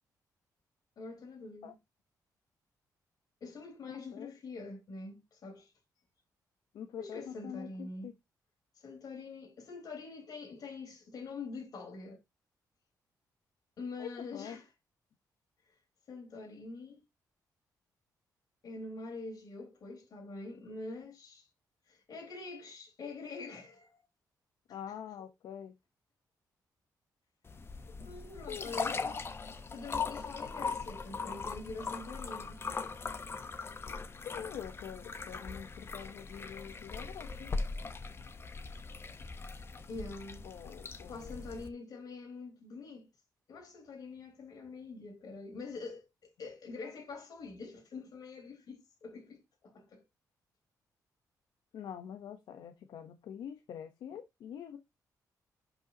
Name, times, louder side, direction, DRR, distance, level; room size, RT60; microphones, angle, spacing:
voice 1, 1.0-1.8 3.4-5.7 7.0-8.1 8.8-12.2 13.8-14.7 16.1-17.0 18.6-21.5 21.9-24.0 28.0-29.3 29.7-32.6 39.9-40.5 41.1-43.1 43.5-50.0, left 3 dB, 60° left, 4.1 m, -45 dB
voice 2, 6.7-8.1 14.0-14.6 24.7-25.7 28.5-29.0 34.2-37.5 40.4-41.4 51.7-54.8, left 9 dB, 85° left, 1.0 m, -45 dB
sound 1, 27.5-41.7, left 4 dB, 35° left, 1.0 m, -40 dB
11.0 x 5.6 x 2.9 m
cardioid pair, 110°, 7 cm